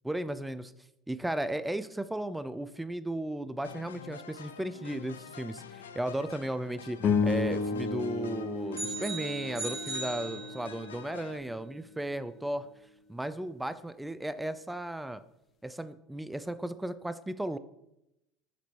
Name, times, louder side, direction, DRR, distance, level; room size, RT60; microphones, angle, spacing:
voice 1, 0.0-0.7 1.1-7.0 7.2-12.7 13.1-15.2 15.6-17.6, right 1 dB, 5° right, 13 dB, 0.3 m, -35 dB
sound 1, 3.6-11.4, left 7 dB, 85° left, 0.3 m, -47 dB
sound 2, 7.0-11.5, left 4 dB, 40° left, 0.6 m, -32 dB
sound 3, 8.7-10.9, right 3 dB, 30° right, 2.4 m, -38 dB
6.6 x 5.1 x 3.1 m, 0.86 s
hypercardioid pair, 75°, 0 cm